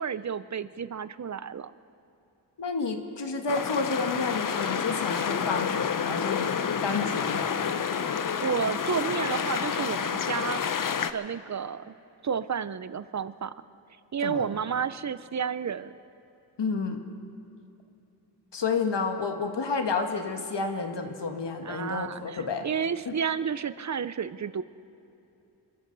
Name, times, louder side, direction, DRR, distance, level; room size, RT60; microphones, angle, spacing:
voice 1, 0.0-1.7 8.2-10.6 11.1-11.9 12.2-13.5 14.1-15.9 21.6-24.6, right 7 dB, 40° right, 15 dB, 0.5 m, -31 dB
voice 2, 2.6-6.5 6.8-7.7 14.2-14.4 16.6-17.0 18.5-22.7 23.0-23.2, left 4 dB, 75° left, 5 dB, 1.5 m, -30 dB
sound 1, 3.5-11.1, left 7 dB, 50° left, 0.7 m, -29 dB
27.5 x 13.0 x 4.0 m, 2.8 s
wide cardioid pair, 90°, 43 cm